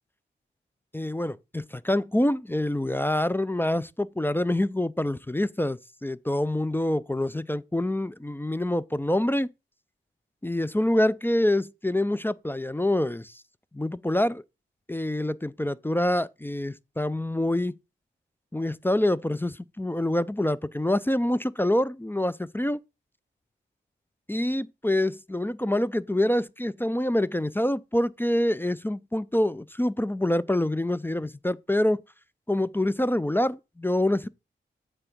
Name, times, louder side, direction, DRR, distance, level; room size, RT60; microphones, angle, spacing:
voice 1, 0.9-9.5 10.4-13.4 13.7-14.4 14.9-17.7 18.5-22.8 24.3-32.0 32.5-34.3, left 1 dB, 10° left, 0.4 m, -26 dB
7.6 x 3.4 x 6.0 m
cardioid pair, 40°, 21 cm